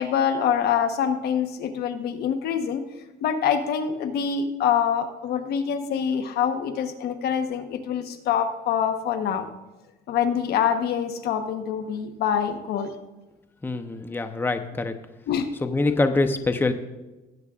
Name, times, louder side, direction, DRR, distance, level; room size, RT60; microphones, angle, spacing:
voice 1, 0.0-2.8 3.2-9.5 10.1-12.9 15.3-15.5, left 8 dB, 70° left, 8 dB, 1.1 m, -25 dB
voice 2, 13.6-14.9 15.6-16.7, left 3 dB, 10° left, 8 dB, 0.8 m, -24 dB
18.5 x 8.1 x 2.5 m, 1.1 s
cardioid pair, 110°, 17 cm